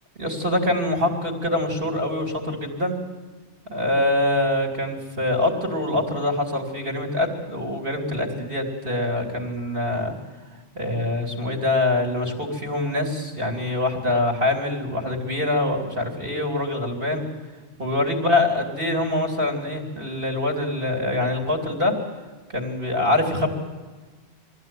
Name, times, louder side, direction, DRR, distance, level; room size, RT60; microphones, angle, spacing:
voice 1, 0.2-3.0 3.7-10.1 10.8-17.2 17.8-21.9 22.5-23.5, left 2 dB, 50° right, 3 dB, 3.5 m, -24 dB
22.5 x 15.5 x 9.2 m, 1.4 s
omnidirectional pair, 1.2 m